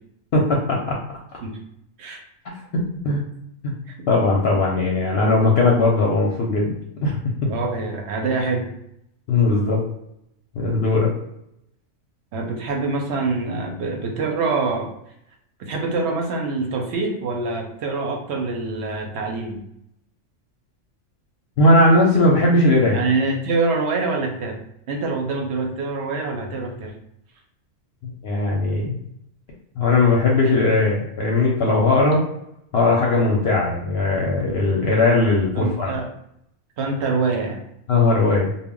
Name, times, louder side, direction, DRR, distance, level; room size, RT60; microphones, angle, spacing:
voice 1, 0.3-1.2 3.0-3.2 3.6-3.7 4.1-6.7 7.0-7.2 9.3-9.8 10.6-11.1 21.6-23.0 28.0-29.0 29.8-32.2 32.7-35.9 37.9-38.5, left 2 dB, 65° left, -2 dB, 0.7 m, -18 dB
voice 2, 7.5-8.7 12.3-14.9 15.6-19.6 22.9-24.6 24.9-26.9 30.4-30.6 35.6-36.1 36.8-37.6, right 3 dB, 65° right, 1 dB, 0.8 m, -25 dB
2.1 x 2.0 x 3.6 m, 0.77 s
omnidirectional pair, 1.3 m